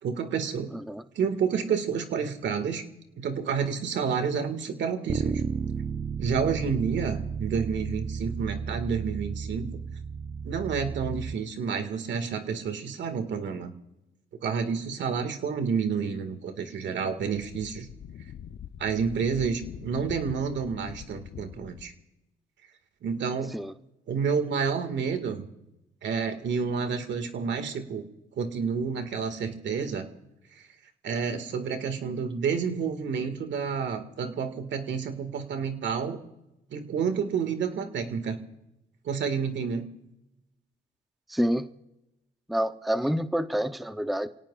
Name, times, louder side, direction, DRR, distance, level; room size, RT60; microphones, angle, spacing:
voice 1, 0.0-0.7 1.2-2.8 3.2-5.4 6.2-9.7 10.4-13.7 14.4-17.9 18.8-21.9 23.0-23.5 24.1-25.5 26.0-28.0 28.4-30.1 31.0-36.2 36.7-38.4 39.1-39.8, right 6 dB, 65° right, 7 dB, 2.0 m, -29 dB
voice 2, 0.7-1.0 23.5-23.7 41.3-41.7 42.5-44.3, equal, ahead, 9 dB, 0.7 m, -28 dB
Bass guitar, 5.1-11.3, right 6 dB, 35° right, 0.5 m, -33 dB
Wind, 17.3-22.0, left 9 dB, 60° left, 0.9 m, -43 dB
28.5 x 18.0 x 2.5 m, 0.92 s
cardioid pair, 90°, 20 cm